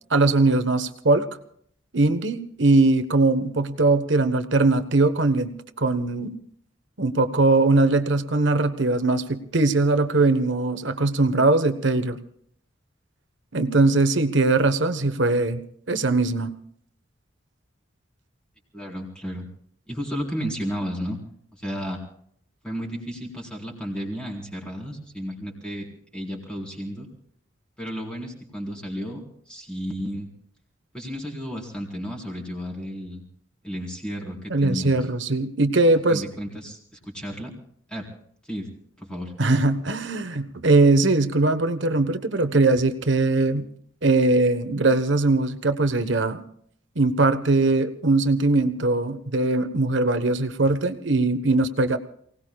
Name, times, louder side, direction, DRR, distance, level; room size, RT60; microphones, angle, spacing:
voice 1, 0.1-1.3 1.9-6.3 7.0-12.2 13.5-16.5 34.5-36.2 39.4-43.7 44.0-46.4 46.9-52.0, right 2 dB, 65° right, 9 dB, 1.2 m, -21 dB
voice 2, 18.7-19.5 19.9-21.2 21.5-22.0 22.6-27.1 27.8-30.3 30.9-33.2 33.6-35.1 36.1-37.5 37.9-38.1 38.4-38.7 39.0-39.3, equal, 5° left, -2 dB, 4.2 m, -33 dB
29.0 x 18.5 x 2.4 m, 0.64 s
head